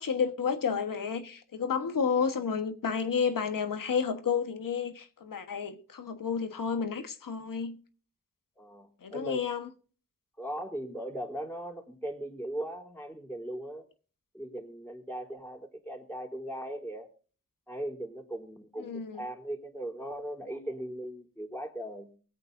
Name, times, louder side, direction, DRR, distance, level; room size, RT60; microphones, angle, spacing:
voice 1, 0.0-7.8 9.0-9.7 18.8-19.2, left 6 dB, 80° left, 1.4 m, -31 dB
voice 2, 8.6-9.5 10.4-13.8 14.3-17.1 17.7-22.1, right 1 dB, 5° left, 3.4 m, -38 dB
24.0 x 8.2 x 2.6 m
cardioid pair, 60°, 33 cm